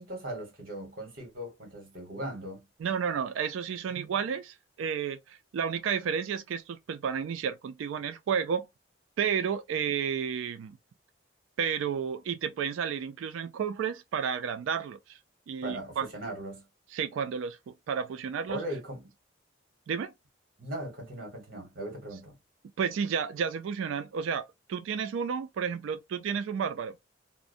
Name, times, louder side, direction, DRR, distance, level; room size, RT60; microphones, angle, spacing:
voice 1, 0.0-2.6 15.6-16.6 18.5-19.1 20.6-22.3, right 1 dB, 45° right, 1.3 m, -38 dB
voice 2, 2.8-8.7 9.2-10.8 11.6-15.2 15.5-16.1 16.9-17.6 17.9-18.6 19.9-20.1 22.8-27.0, right 7 dB, 80° right, 0.3 m, -31 dB
2.5 x 2.1 x 2.5 m
head